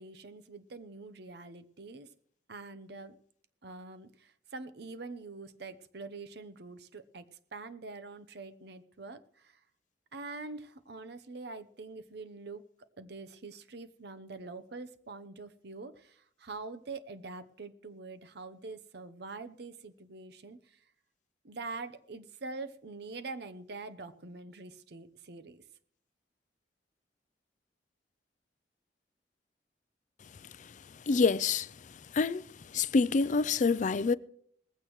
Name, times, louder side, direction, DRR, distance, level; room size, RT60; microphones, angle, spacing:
voice 1, 0.0-2.1 2.5-3.2 3.6-9.6 10.1-12.6 13.0-20.8 21.4-25.6, right 3 dB, 65° right, 0.8 m, -45 dB
voice 2, 31.1-31.7 32.1-32.4 32.7-34.1, left 4 dB, 45° left, 0.4 m, -26 dB
19.0 x 15.0 x 3.1 m
head